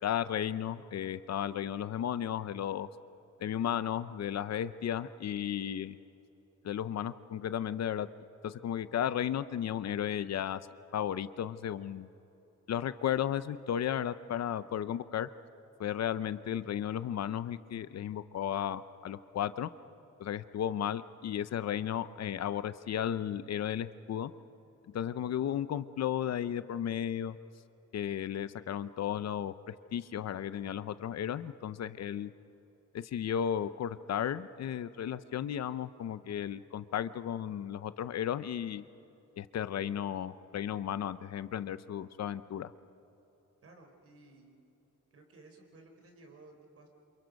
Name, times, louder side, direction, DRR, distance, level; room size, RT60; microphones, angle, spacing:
voice 1, 0.0-2.9 3.4-6.0 6.6-8.1 8.4-10.6 10.9-12.1 12.7-15.3 15.8-19.7 20.2-24.3 24.9-27.4 27.9-32.3 33.0-38.8 39.4-42.7, left 10 dB, 60° left, 14 dB, 0.7 m, -34 dB
voice 2, 43.6-44.5 45.1-46.9, right 2 dB, 50° right, 3 dB, 4.1 m, -56 dB
28.5 x 27.5 x 5.3 m, 3.0 s
wide cardioid pair, 175°, 30 cm